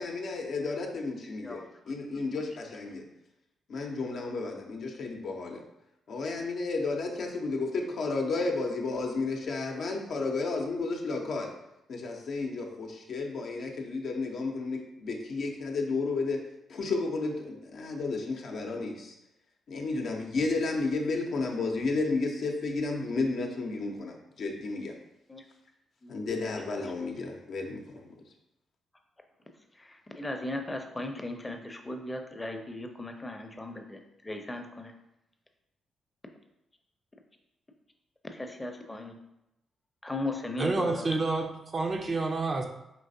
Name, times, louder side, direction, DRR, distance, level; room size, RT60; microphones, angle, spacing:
voice 1, 0.0-3.0 3.7-5.6 6.1-11.5 11.9-16.4 16.7-19.1 19.7-24.9 26.1-28.1, left 3 dB, 65° left, 0.6 m, -32 dB
voice 2, 26.0-26.4 29.8-34.9 38.3-39.2 40.0-41.1, left 2 dB, 20° left, 0.6 m, -37 dB
voice 3, 40.6-42.7, right 3 dB, 45° right, 0.5 m, -29 dB
4.5 x 3.1 x 2.7 m
hypercardioid pair, 45°, 0 cm